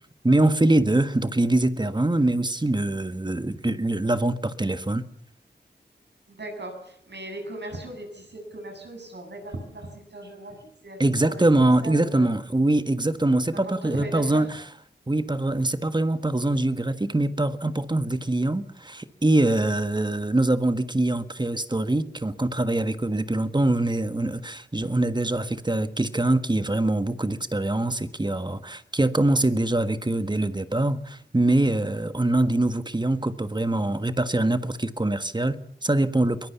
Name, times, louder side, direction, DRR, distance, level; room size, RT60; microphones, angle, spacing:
voice 1, 0.2-5.1 11.0-14.6 15.1-36.5, right 2 dB, 25° right, 1.5 m, -23 dB
voice 2, 6.3-12.4 13.5-14.5, right 1 dB, 75° right, 7.6 m, -38 dB
23.0 x 21.0 x 7.1 m
wide cardioid pair, 60°, 18 cm